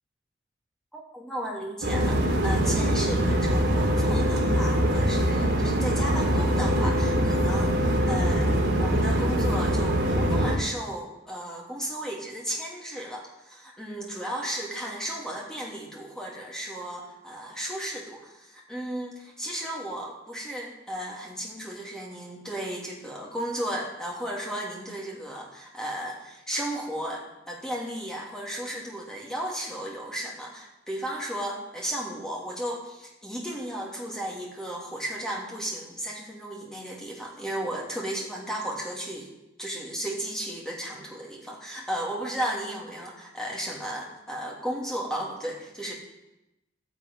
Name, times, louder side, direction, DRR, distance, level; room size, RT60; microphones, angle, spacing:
voice 1, 0.9-39.3 39.6-45.9, right 1 dB, 5° left, -2 dB, 2.9 m, -34 dB
sound 1, 1.8-10.6, equal, 55° right, 3.3 m, -23 dB
12.5 x 11.0 x 9.1 m, 0.93 s
head